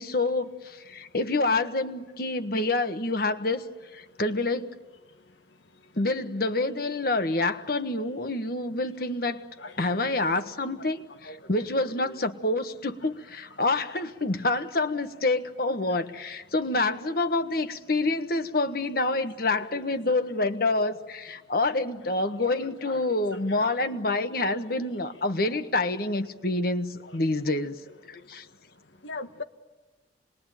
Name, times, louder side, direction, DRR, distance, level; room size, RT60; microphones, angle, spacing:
voice 1, 0.0-3.7 3.9-4.8 5.9-9.5 9.8-27.8 28.1-28.4, left 2 dB, 55° left, 9 dB, 1.4 m, -27 dB
voice 2, 11.8-12.1 22.5-23.0 23.5-23.8 27.0-27.2 29.0-29.4, left 3 dB, 90° left, 8 dB, 1.5 m, -40 dB
27.5 x 21.5 x 9.2 m, 1.2 s
head